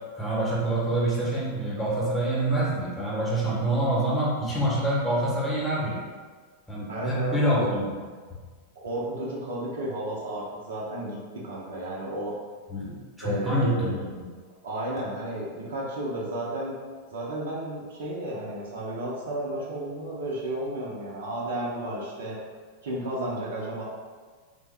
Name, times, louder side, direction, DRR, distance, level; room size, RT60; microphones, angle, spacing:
voice 1, 0.2-6.0 6.7-7.9 12.7-12.9 13.2-14.1, right 1 dB, ahead, -7 dB, 1.0 m, -26 dB
voice 2, 6.9-7.7 8.8-12.3 13.2-14.1 14.6-16.8 17.1-22.4 22.8-23.8, right 1 dB, 60° right, -4 dB, 0.6 m, -33 dB
3.3 x 2.1 x 3.2 m, 1.5 s
figure-of-eight pair, 90°, 0 cm